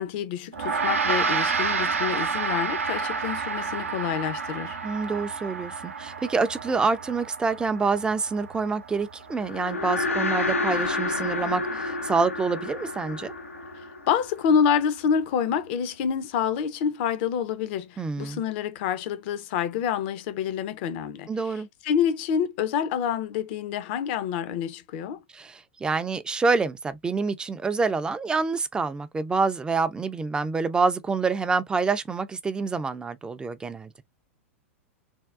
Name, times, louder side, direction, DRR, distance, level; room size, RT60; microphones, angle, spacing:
voice 1, 0.0-4.8 14.1-21.3 21.8-25.2, left 7 dB, 50° left, 0.6 m, -27 dB
Gong, 0.5-10.2, right 5 dB, 85° right, 0.7 m, -30 dB
voice 2, 4.8-13.3 18.0-18.4 21.3-21.7 25.3-34.0, right 4 dB, 10° right, 0.4 m, -27 dB
sound 1, 9.4-14.8, left 3 dB, 90° left, 0.7 m, -29 dB
3.5 x 2.2 x 2.4 m
figure-of-eight pair, 95°, 7 cm